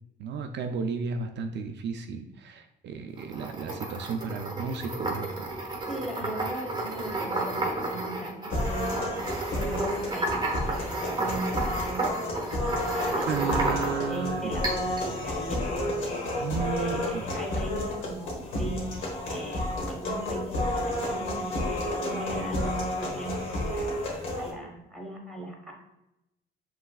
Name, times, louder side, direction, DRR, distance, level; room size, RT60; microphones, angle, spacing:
voice 1, 0.2-5.5 13.3-14.6 16.4-17.3, right 6 dB, 65° right, 5 dB, 0.4 m, -33 dB
sound 1, 3.2-14.2 14.6-15.1, right 2 dB, 20° right, 0.9 m, -32 dB
voice 2, 5.9-9.1 9.5-13.6 14.1-16.3 16.7-18.9 19.2-24.0 24.3-25.7, right 1 dB, 5° left, -1 dB, 1.2 m, -38 dB
sound 2, 8.5-24.5, left 1 dB, 85° left, 1.2 m, -31 dB
5.5 x 3.1 x 2.4 m, 0.89 s
cardioid pair, 90°, 20 cm